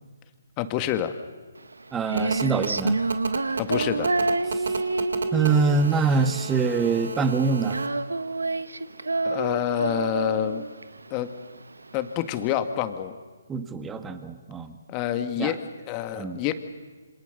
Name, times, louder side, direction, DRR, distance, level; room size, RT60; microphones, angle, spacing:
voice 1, 0.6-1.2 3.6-4.1 9.2-10.6 11.1-11.3 11.9-13.2 14.9-16.5, left 11 dB, 25° left, 9 dB, 1.9 m, -27 dB
Female singing, 1.6-12.5, right 3 dB, 85° right, 1.2 m, -28 dB
voice 2, 1.9-3.0 4.5-4.6 5.3-7.8 13.5-14.8 15.4-15.5 16.1-16.4, right 4 dB, 10° right, 9 dB, 1.7 m, -24 dB
Telephone, 2.2-7.9, right 5 dB, 65° right, 2.6 m, -33 dB
27.5 x 26.0 x 6.9 m, 1.4 s
figure-of-eight pair, 140°, 0 cm